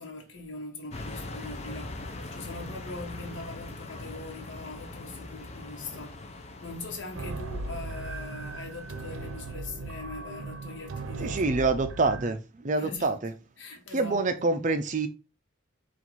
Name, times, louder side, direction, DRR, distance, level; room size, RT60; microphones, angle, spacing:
voice 1, 0.0-2.0 2.3-11.4 11.7-11.8 12.7-13.2 13.6-14.6, left 2 dB, 65° left, 1.1 m, -42 dB
sound 1, 0.9-9.5, left 2 dB, 30° left, 0.5 m, -42 dB
sound 2, 7.1-12.3, right 3 dB, 85° right, 0.6 m, -37 dB
voice 2, 11.2-13.3 13.9-15.1, right 3 dB, 40° right, 0.5 m, -26 dB
4.1 x 2.5 x 4.4 m
head